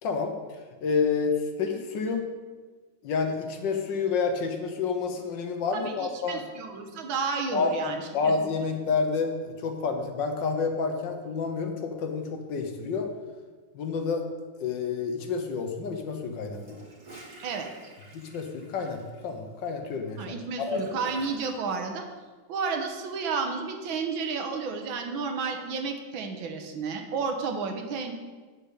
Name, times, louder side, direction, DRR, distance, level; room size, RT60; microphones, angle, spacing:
voice 1, 0.0-2.3 3.0-6.4 7.5-13.1 13.7-14.3 14.6-16.8 18.1-20.3 20.7-20.8, left 5 dB, 70° left, 5 dB, 1.6 m, -29 dB
voice 2, 5.8-8.3 17.4-17.7 20.2-22.0 22.5-28.1, right 5 dB, 80° right, 5 dB, 1.7 m, -32 dB
Gurgling / Toilet flush, 16.4-21.8, right 2 dB, 35° right, 2.1 m, -50 dB
9.0 x 5.2 x 6.6 m, 1.4 s
omnidirectional pair, 2.2 m